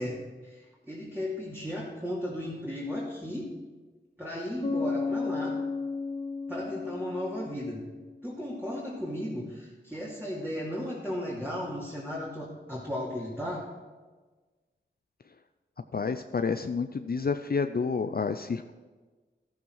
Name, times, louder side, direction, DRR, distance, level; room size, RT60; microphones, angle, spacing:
voice 1, 0.0-3.5 4.2-5.6 6.5-7.8 8.2-13.7, left 1 dB, 10° right, -6 dB, 2.5 m, -35 dB
Bass guitar, 4.6-8.3, left 4 dB, 30° left, 1.0 m, -33 dB
voice 2, 15.9-18.7, left 5 dB, 50° left, 8 dB, 0.5 m, -29 dB
13.5 x 7.2 x 4.7 m, 1.3 s
cardioid pair, 45°, 20 cm